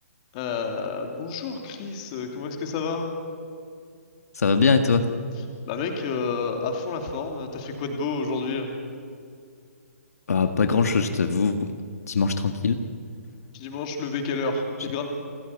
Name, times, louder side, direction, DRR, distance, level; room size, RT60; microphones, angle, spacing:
voice 1, 0.3-3.0 5.7-8.8 13.5-15.0, left 4 dB, 25° left, 3 dB, 2.8 m, -30 dB
voice 2, 4.4-5.1 10.3-11.7 12.1-12.8, left 4 dB, 75° left, 6 dB, 1.8 m, -21 dB
29.0 x 15.5 x 8.5 m, 2.3 s
hypercardioid pair, 165°, 8 cm